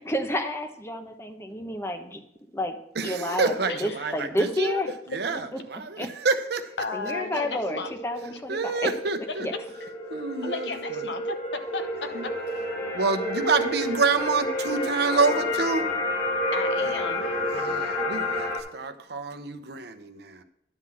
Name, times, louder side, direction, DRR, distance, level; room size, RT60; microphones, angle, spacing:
voice 1, 0.1-2.2 2.5-2.8 3.0-3.5 3.8-4.9 6.0-6.1 6.9-8.9 9.4-9.5, left 1 dB, 15° left, 6 dB, 0.9 m, -30 dB
voice 2, 2.9-4.8 5.1-6.7 8.5-9.5 10.1-11.1 12.1-12.2 12.9-15.9 17.5-20.4, right 4 dB, 65° right, 9 dB, 0.8 m, -28 dB
voice 3, 3.6-4.1 6.8-7.9 8.3-8.4 9.3-9.4 9.8-9.9 10.4-12.3 16.5-17.4, left 3 dB, 80° left, 8 dB, 0.9 m, -34 dB
sound 1, 6.7-18.6, left 1 dB, 55° left, 1.4 m, -30 dB
11.0 x 3.8 x 7.3 m, 0.79 s
head